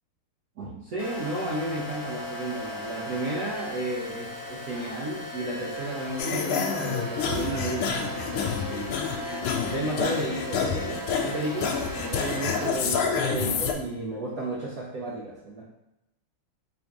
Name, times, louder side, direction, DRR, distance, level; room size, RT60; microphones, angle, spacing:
voice 1, 0.6-9.0 9.7-15.7, right 1 dB, 70° right, -5 dB, 0.8 m, -33 dB
sound 1, 1.0-12.7, equal, 5° right, 0.9 m, -37 dB
sound 2, 6.2-13.7, left 6 dB, 80° left, 1.4 m, -29 dB
sound 3, 7.2-13.7, left 3 dB, 50° left, 1.3 m, -42 dB
3.7 x 2.7 x 4.5 m, 0.87 s
omnidirectional pair, 2.4 m